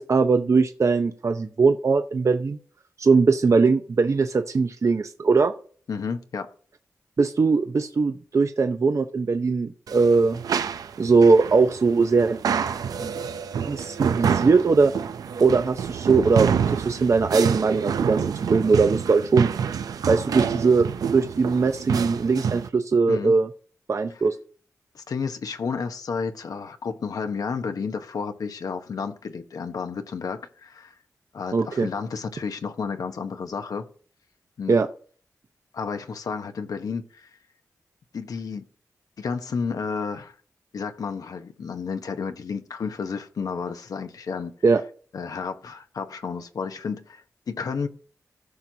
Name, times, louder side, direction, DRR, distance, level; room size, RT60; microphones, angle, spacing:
voice 1, 0.0-2.6 3.0-5.5 7.2-10.4 11.0-12.4 13.0-13.1 13.6-14.9 15.4-19.5 20.1-23.5 23.9-24.4 31.5-31.9 34.7-34.9 44.6-44.8, right 4 dB, 55° right, 0.7 m, -20 dB
voice 2, 5.9-6.5 23.1-23.3 24.9-30.9 31.3-33.9 34.6-34.7 35.7-37.3 38.1-38.6 39.2-40.3 40.7-44.5 45.1-47.9, left 5 dB, 80° left, 0.9 m, -31 dB
sound 1, 9.9-22.7, right 7 dB, 90° right, 0.5 m, -27 dB
14.5 x 6.0 x 2.7 m
cardioid pair, 50°, 6 cm